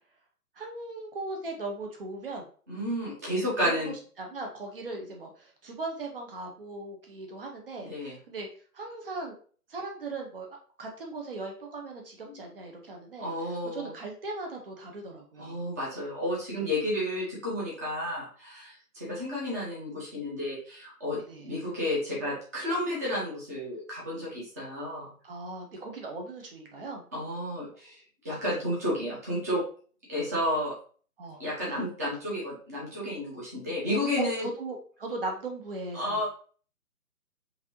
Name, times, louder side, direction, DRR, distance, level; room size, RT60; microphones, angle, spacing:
voice 1, 0.6-2.4 3.6-7.9 8.3-8.5 8.7-9.4 9.7-10.5 10.8-15.6 16.6-16.7 21.2-21.5 25.2-27.0 31.2-31.7 34.2-36.2, right 3 dB, 40° right, 1 dB, 1.0 m, -38 dB
voice 2, 2.7-3.9 7.8-8.2 12.3-12.4 13.2-13.9 15.4-25.1 27.1-28.0 28.2-29.6 30.1-30.7 31.4-34.5 35.9-36.3, left 1 dB, 10° right, -6 dB, 0.8 m, -31 dB
5.1 x 2.8 x 3.0 m, 0.43 s
figure-of-eight pair, 140°, 45 cm